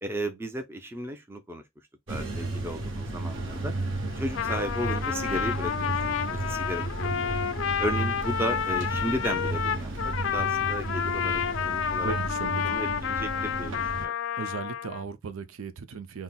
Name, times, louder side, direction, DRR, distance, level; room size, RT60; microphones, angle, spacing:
voice 1, 0.0-1.6 2.1-3.7 4.2-7.3 7.8-12.1 12.6-14.1, equal, 10° right, 0.4 m, -34 dB
sound 1, 2.1-14.1, right 2 dB, 70° right, 0.9 m, -33 dB
Trumpet, 4.2-15.0, left 8 dB, 70° left, 0.4 m, -30 dB
sound 2, 7.3-11.8, left 4 dB, 35° right, 2.3 m, -57 dB
voice 2, 12.0-12.8 14.4-16.2, right 5 dB, 85° right, 0.5 m, -36 dB
5.5 x 2.0 x 2.2 m
head